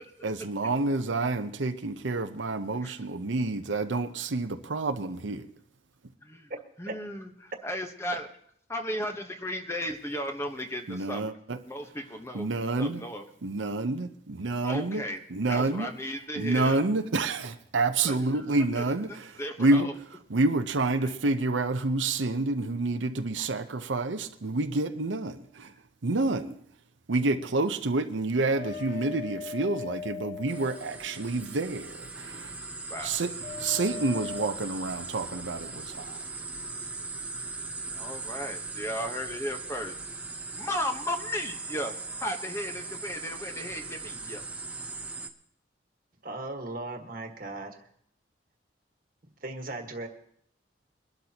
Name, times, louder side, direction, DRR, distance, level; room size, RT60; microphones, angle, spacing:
voice 1, 0.2-5.5 10.9-11.6 12.3-13.0 13.4-15.0 15.3-15.9 16.3-25.7 26.0-26.6 27.1-32.6 33.0-36.2, right 2 dB, 90° right, 7 dB, 0.8 m, -28 dB
voice 2, 6.8-8.3 8.7-11.3 11.6-12.5 12.8-13.2 14.6-15.2 15.5-16.8 18.0-18.4 18.8-18.9 19.1-19.9 21.0-21.1 32.9-33.2 37.9-39.9 40.5-41.9 42.2-44.4, equal, 15° left, 4 dB, 1.1 m, -35 dB
sound 1, 28.5-31.5 33.4-34.5, left 7 dB, 70° left, 1.6 m, -39 dB
sound 2, 30.5-45.3, right 3 dB, 10° right, 0.7 m, -39 dB
voice 3, 46.2-47.8 49.4-50.1, right 2 dB, 50° right, 4 dB, 1.6 m, -37 dB
23.5 x 12.0 x 2.9 m, 0.66 s
head